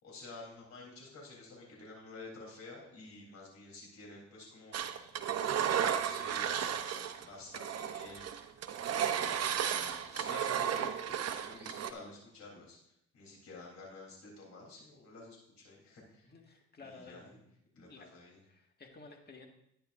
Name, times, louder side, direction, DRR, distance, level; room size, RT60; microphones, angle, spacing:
voice 1, 0.0-4.8 5.3-12.8 13.1-16.3 16.8-17.4 17.7-18.4, left 3 dB, 65° left, -3 dB, 3.5 m, -51 dB
Engine, 4.7-7.2 7.5-11.9, right 8 dB, 55° right, 0.8 m, -34 dB
voice 2, 16.2-17.4 17.9-18.1 18.4-19.5, left 4 dB, 35° left, 2 dB, 1.8 m, -53 dB
12.0 x 10.0 x 2.6 m, 0.75 s
cardioid pair, 90°, 30 cm